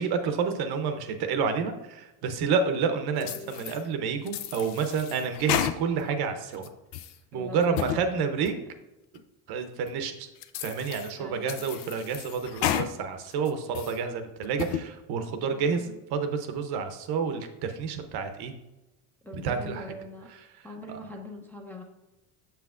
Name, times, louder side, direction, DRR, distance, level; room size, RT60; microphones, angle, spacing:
voice 1, 0.0-6.7 7.3-8.5 9.5-10.3 10.6-18.5 19.4-19.9 20.9-21.0, right 5 dB, 60° right, 7 dB, 0.8 m, -29 dB
sound 1, 3.2-3.8 4.3-6.1 6.5-7.2 7.6-8.0 8.4-8.5 9.1-9.2 9.9-10.0 10.4-11.1 11.5-12.9 13.3-14.0 14.4-14.8, left 11 dB, 65° left, 0.5 m, -32 dB
voice 2, 3.2-3.7 7.3-8.3 11.2-11.7 15.4-16.0 19.2-20.3 20.6-21.8, left 1 dB, 5° left, -1 dB, 0.6 m, -42 dB
6.9 x 5.7 x 2.4 m, 1.0 s
cardioid pair, 115°, 44 cm